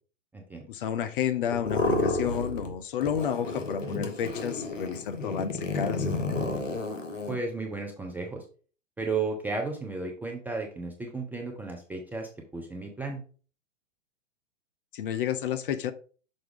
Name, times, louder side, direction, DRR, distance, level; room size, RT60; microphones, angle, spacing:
voice 1, 0.7-6.2 14.9-15.9, left 8 dB, 45° left, 0.7 m, -31 dB
sound 1, 1.5-2.7 3.0-7.4, left 2 dB, 80° left, 1.4 m, -31 dB
voice 2, 7.3-8.4 9.0-13.2, right 3 dB, 5° right, 0.5 m, -34 dB
6.3 x 4.6 x 3.5 m
figure-of-eight pair, 110°, 37 cm